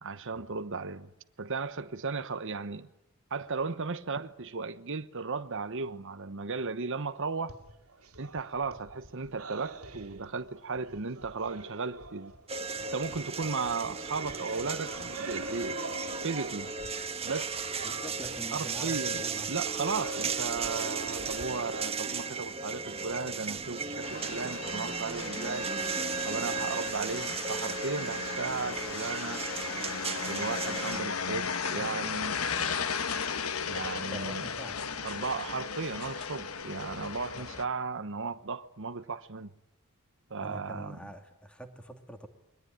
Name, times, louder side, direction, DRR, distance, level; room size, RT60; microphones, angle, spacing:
voice 1, 0.0-1.1 1.4-2.9 3.3-7.6 8.2-12.3 12.9-15.8 16.2-16.7 17.2-17.7 18.5-19.2 19.5-25.7 26.2-29.4 30.2-32.8 33.7-34.5 35.0-39.5 40.3-41.0, right 4 dB, 60° right, 1.1 m, -35 dB
sound 1, 7.5-17.3 17.5-25.5, right 3 dB, 90° right, 2.5 m, -46 dB
sound 2, 12.5-31.0, right 4 dB, 30° right, 1.4 m, -35 dB
voice 2, 17.8-19.5 34.1-34.8 37.3-37.6 40.4-42.3, right 1 dB, 5° left, 2.6 m, -45 dB
sound 3, 24.0-37.6, left 6 dB, 75° left, 1.3 m, -36 dB
29.0 x 22.0 x 9.3 m
head